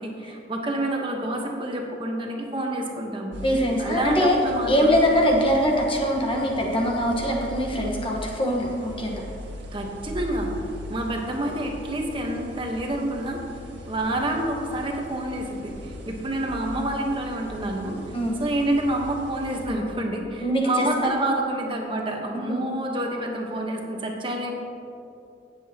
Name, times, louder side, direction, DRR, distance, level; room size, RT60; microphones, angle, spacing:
voice 1, 0.0-3.3 3.8-5.0 9.7-10.5 10.9-13.4 13.9-18.0 18.4-24.5, right 1 dB, 30° right, 1 dB, 1.2 m, -28 dB
sound 1, 3.3-19.7, left 1 dB, 85° right, 1.8 m, -40 dB
voice 2, 3.4-4.4 4.7-9.2 18.1-18.4 20.4-21.1 22.5-22.6, equal, 30° left, -1 dB, 1.3 m, -23 dB
17.0 x 7.8 x 2.9 m, 2.7 s
head